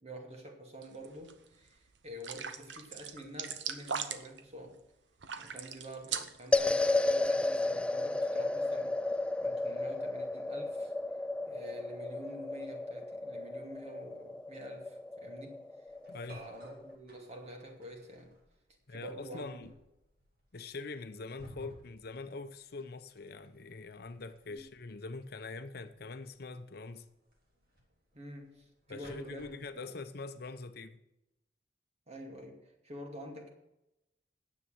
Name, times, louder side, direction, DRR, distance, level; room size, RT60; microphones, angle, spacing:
voice 1, 0.0-4.8 5.4-9.0 9.4-10.9 11.4-15.6 16.3-18.3 18.9-19.7 24.5-24.7 28.1-29.9 32.1-33.5, equal, 35° right, 2.4 m, -48 dB
sound 1, 0.8-1.3 1.7-1.8 2.2-4.4 5.2-6.5, right 7 dB, 90° right, 0.9 m, -39 dB
sound 2, 6.5-17.0, left 2 dB, 5° left, 0.3 m, -33 dB
sound 3, 15.9-29.7, equal, 55° right, 3.2 m, -59 dB
voice 2, 16.1-16.5 18.9-19.7 20.5-27.1 28.9-31.0, left 3 dB, 60° left, 0.8 m, -44 dB
9.8 x 7.7 x 7.5 m
head